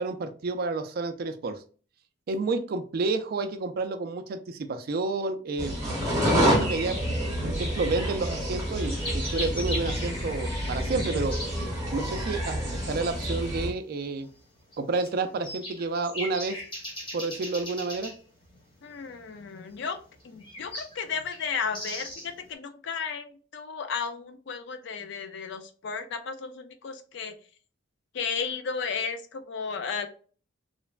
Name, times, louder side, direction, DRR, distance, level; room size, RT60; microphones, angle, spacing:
voice 1, 0.0-1.6 2.3-5.7 6.1-11.4 11.9-12.6 12.9-14.3 14.8-16.6 17.1-18.1, right 3 dB, 50° right, 8 dB, 0.3 m, -30 dB
sound 1, 5.6-13.7, equal, 15° right, 1.1 m, -28 dB
sound 2, 8.4-22.5, left 1 dB, 25° left, 0.9 m, -40 dB
voice 2, 18.8-20.0 20.2-27.3 28.1-30.1, left 6 dB, 60° left, 8 dB, 0.4 m, -34 dB
3.1 x 2.1 x 2.3 m, 0.40 s
head